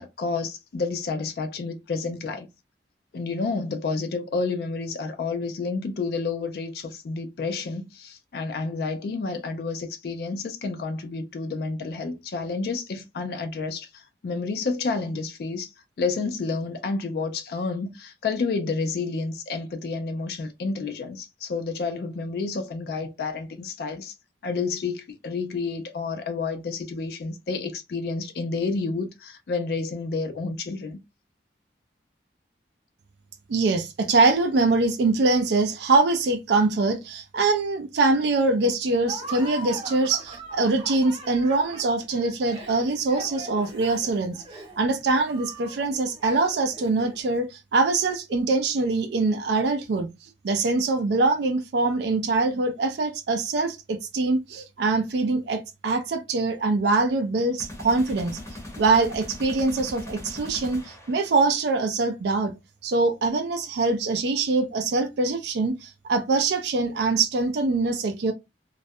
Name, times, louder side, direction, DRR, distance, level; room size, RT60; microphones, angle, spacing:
voice 1, 0.0-2.5 3.1-15.7 16.0-24.1 24.4-31.0, left 4 dB, 55° left, 0.3 m, -30 dB
voice 2, 33.5-44.4 44.8-50.1 50.4-58.4 58.8-62.5 62.8-68.3, right 3 dB, 65° right, 0.4 m, -23 dB
Laughter, 39.0-47.3, right 2 dB, 30° right, 0.8 m, -41 dB
sound 1, 57.6-61.5, left 1 dB, 15° left, 0.7 m, -40 dB
2.3 x 2.1 x 2.6 m
head